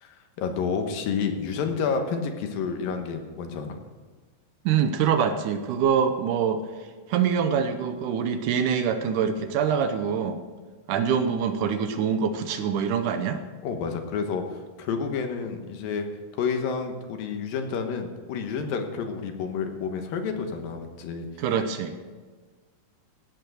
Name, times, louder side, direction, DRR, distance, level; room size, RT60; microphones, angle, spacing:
voice 1, 0.0-3.8 13.6-16.1 16.3-21.3, left 5 dB, 90° left, 5 dB, 3.0 m, -30 dB
voice 2, 4.7-6.6 7.1-10.4 10.9-13.4 21.4-22.0, right 7 dB, 75° right, 8 dB, 2.1 m, -25 dB
17.0 x 8.1 x 6.3 m, 1.4 s
omnidirectional pair, 4.0 m